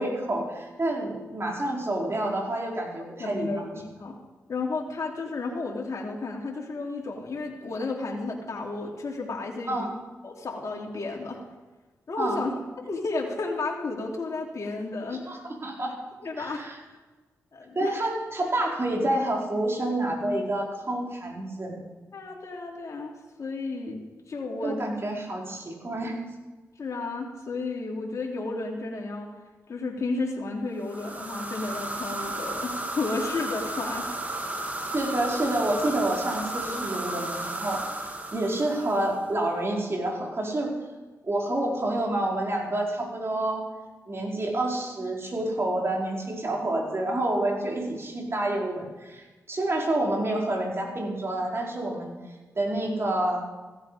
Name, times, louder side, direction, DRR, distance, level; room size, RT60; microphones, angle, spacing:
voice 1, 0.0-3.6 9.7-9.9 12.2-12.4 15.3-15.9 16.4-16.8 17.7-21.8 24.6-26.2 34.9-37.8 38.3-40.8 41.2-43.6 44.1-52.1 52.5-53.4, right 1 dB, 45° right, -1 dB, 4.8 m, -28 dB
voice 2, 3.2-4.2 4.5-9.9 10.2-11.4 12.1-12.5 12.8-15.2 16.2-16.6 17.5-17.9 22.1-23.1 23.4-24.0 24.3-24.9 26.8-29.3 29.7-34.3, left 3 dB, 60° left, -1 dB, 3.1 m, -32 dB
sound 1, 30.8-39.4, right 1 dB, 25° right, 2.5 m, -34 dB
15.5 x 13.5 x 5.0 m, 1.2 s
cardioid pair, 45°, 6 cm